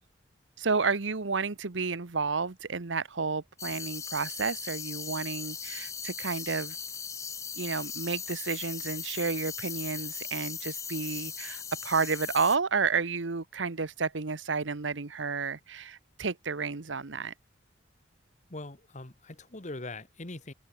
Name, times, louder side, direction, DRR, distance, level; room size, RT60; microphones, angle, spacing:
voice 1, 0.6-6.8 7.6-17.3, right 4 dB, 75° right, 1.1 m, -31 dB
sound 1, 3.6-12.6, left 6 dB, 15° left, 0.5 m, -38 dB
voice 2, 18.5-20.5, left 2 dB, 40° left, 1.8 m, -41 dB
head